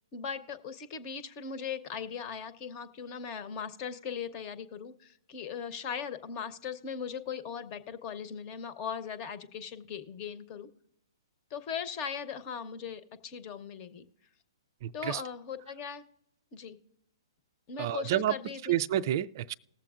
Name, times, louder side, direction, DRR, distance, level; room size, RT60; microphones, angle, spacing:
voice 1, 0.1-10.7 11.5-14.0 14.9-16.0 16.5-16.8 17.7-18.8, left 7 dB, 35° left, 0.9 m, -39 dB
voice 2, 14.8-15.2 17.8-18.3 18.7-19.5, right 12 dB, 45° right, 0.3 m, -29 dB
19.5 x 7.4 x 2.4 m
hypercardioid pair, 130°, 3 cm